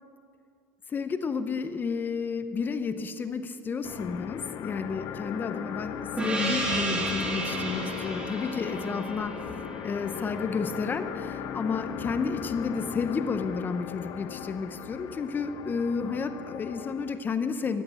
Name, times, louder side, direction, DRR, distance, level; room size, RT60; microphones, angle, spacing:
voice 1, 0.9-9.5 9.8-17.8, left 5 dB, 25° left, 10 dB, 0.7 m, -31 dB
sound 1, 3.8-17.2, left 8 dB, 50° left, 0.9 m, -37 dB
Gong, 6.2-11.2, right 2 dB, 15° right, 2.5 m, -32 dB
14.0 x 8.5 x 8.1 m, 2.4 s
supercardioid pair, 125°, 8 cm